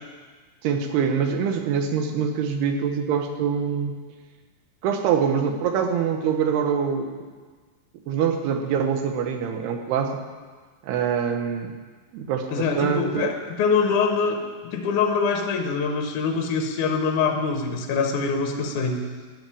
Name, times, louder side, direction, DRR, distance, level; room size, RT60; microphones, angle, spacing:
voice 1, 0.6-4.0 4.8-7.2 8.1-10.1 10.8-11.7 12.1-13.4, right 7 dB, 80° right, 5 dB, 3.1 m, -24 dB
voice 2, 12.5-19.0, left 5 dB, 70° left, 4 dB, 2.1 m, -24 dB
13.0 x 7.5 x 9.9 m, 1.5 s
omnidirectional pair, 4.6 m